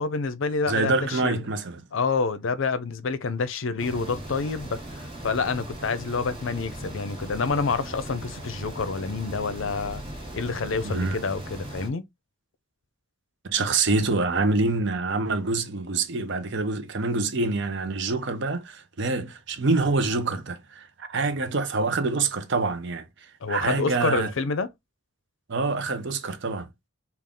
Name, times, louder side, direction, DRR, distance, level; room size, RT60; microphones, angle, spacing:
voice 1, 0.0-1.4 1.9-10.0 10.3-12.0 23.4-24.7, left 4 dB, 65° left, 0.5 m, -28 dB
voice 2, 0.7-1.8 10.8-11.2 13.5-23.0 23.5-24.3 25.5-26.7, right 3 dB, 55° right, 0.7 m, -26 dB
sound 1, 3.8-11.9, right 1 dB, 25° right, 1.2 m, -38 dB
3.5 x 2.4 x 3.8 m
head